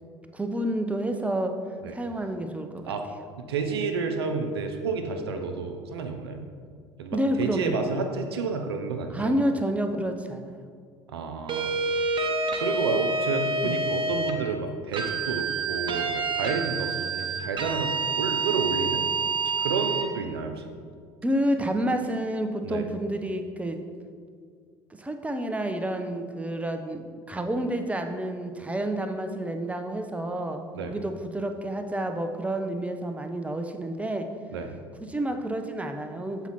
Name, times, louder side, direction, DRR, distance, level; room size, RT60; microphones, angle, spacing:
voice 1, 0.3-1.6 1.9-2.9 7.1-7.8 9.1-10.6 13.6-13.8 21.2-23.8 25.0-34.3 35.0-36.5, right 1 dB, 10° right, 6 dB, 0.6 m, -29 dB
voice 2, 3.4-6.4 7.0-9.4 11.1-11.7 12.6-19.0 19.6-20.7 22.6-22.8 30.7-31.0 34.5-34.7, right 4 dB, 85° right, 5 dB, 0.6 m, -30 dB
sound 1, 11.5-14.4 14.9-20.1, right 4 dB, 40° right, 0.9 m, -28 dB
7.0 x 4.4 x 4.1 m, 2.1 s
hypercardioid pair, 65°, 13 cm